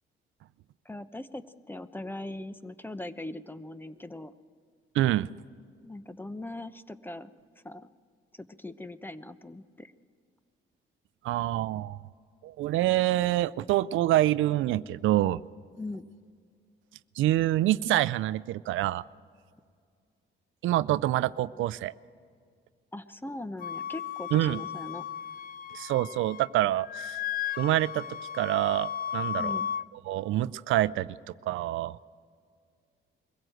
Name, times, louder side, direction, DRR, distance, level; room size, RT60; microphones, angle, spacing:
voice 1, 0.8-4.3 5.8-7.3 7.6-7.9 8.3-9.9 15.8-16.1 22.9-25.1 29.4-29.7, left 2 dB, 10° left, 13 dB, 0.8 m, -40 dB
voice 2, 4.9-5.3 11.2-12.0 12.4-15.4 17.2-19.0 20.6-21.9 24.3-24.6 25.7-27.2 27.6-28.0 28.3-29.5 30.1-31.2 31.5-32.0, right 14 dB, 85° right, 17 dB, 0.5 m, -26 dB
Wind instrument woodwind instrument, 23.6-26.5 26.8-29.8, left 9 dB, 45° left, 0.6 m, -35 dB
23.0 x 16.0 x 7.8 m, 2.1 s
cardioid pair, 90°, 20 cm